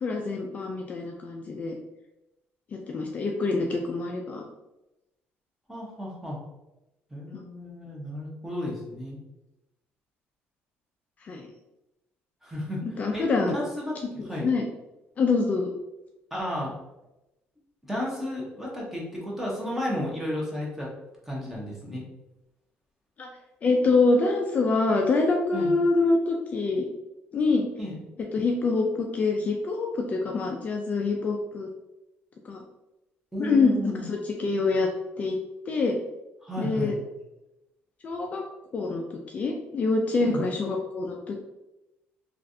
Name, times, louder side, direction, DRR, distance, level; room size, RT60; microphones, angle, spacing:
voice 1, 0.0-1.7 2.9-4.4 7.3-7.4 11.2-11.5 12.8-13.6 14.2-14.6 15.2-15.7 23.2-23.3 23.6-26.9 27.3-27.7 28.3-31.7 32.4-32.6 33.4-34.9 35.2-35.4 35.7-36.0 36.6-37.0 38.0-38.4 38.7-41.4, left 3 dB, 35° left, 1 dB, 0.3 m, -25 dB
voice 2, 5.7-6.4 7.1-9.2 12.4-12.8 13.1-14.5 16.3-16.7 17.9-20.9 21.3-22.0 25.5-25.7 27.8-28.0 33.3-34.0 36.4-37.0 40.2-40.4, left 1 dB, 5° right, -4 dB, 0.9 m, -33 dB
3.1 x 2.4 x 2.6 m, 0.96 s
cardioid pair, 120°, 4 cm